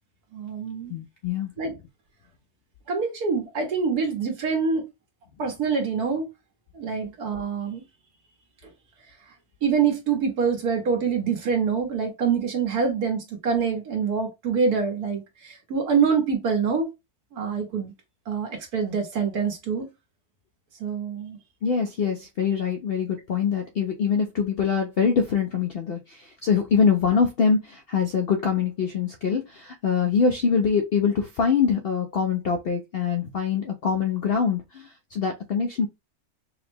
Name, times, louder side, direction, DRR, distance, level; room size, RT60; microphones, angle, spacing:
voice 1, 0.3-0.9 1.6-1.7 2.9-4.8 5.4-6.2 6.7-7.8 9.6-16.9 17.3-17.9 18.3-19.9 20.8-21.4, right 6 dB, 90° right, 1.7 m, -25 dB
voice 2, 0.9-1.5 21.6-35.9, left 6 dB, 70° left, 0.5 m, -24 dB
4.8 x 2.1 x 3.3 m
omnidirectional pair, 1.6 m